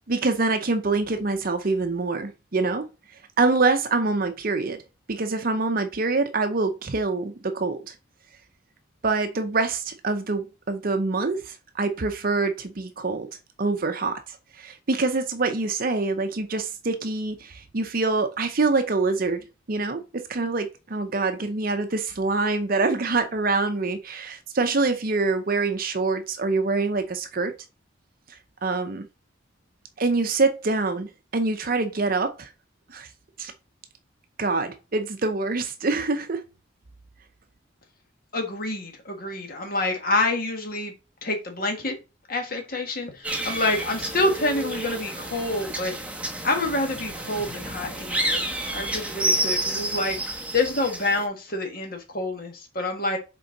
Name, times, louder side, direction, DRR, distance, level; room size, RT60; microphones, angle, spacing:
voice 1, 0.1-2.9 3.4-4.8 5.1-7.9 9.0-13.3 13.6-27.5 28.6-29.1 30.0-32.5 32.9-33.1 33.4-33.5 34.4-36.4, right 3 dB, 45° right, 0.6 m, -25 dB
voice 2, 38.3-40.9 41.2-41.9 42.3-46.0 46.4-53.2, left 2 dB, 50° left, 1.7 m, -27 dB
sound 1, 43.2-51.2, right 1 dB, 5° right, 1.1 m, -30 dB
6.8 x 4.4 x 3.9 m
head